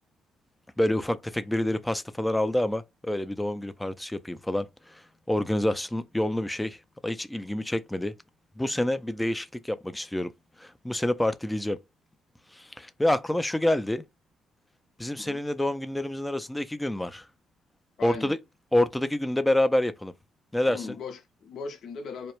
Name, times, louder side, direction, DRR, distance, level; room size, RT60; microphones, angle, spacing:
voice 1, 0.8-8.2 8.6-10.3 10.6-11.8 12.5-14.0 15.0-17.3 18.0-18.4 18.7-20.1 20.5-21.0, left 1 dB, 10° left, 0.4 m, -27 dB
voice 2, 18.0-18.3 20.7-22.3, left 4 dB, 60° left, 0.6 m, -38 dB
2.2 x 2.0 x 3.0 m
supercardioid pair, 70°, 0 cm